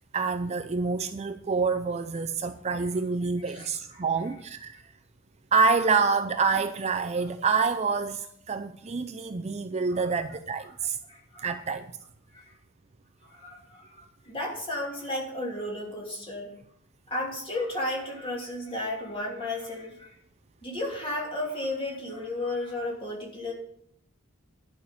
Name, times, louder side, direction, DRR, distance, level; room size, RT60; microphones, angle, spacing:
voice 1, 0.1-4.8 5.5-11.0 11.4-11.9, right 4 dB, 30° right, 0.5 m, -27 dB
voice 2, 11.1-11.5 12.3-12.4 13.3-16.5 17.1-20.1 20.6-23.5, left 1 dB, 25° left, 3.0 m, -33 dB
11.5 x 5.8 x 7.4 m
head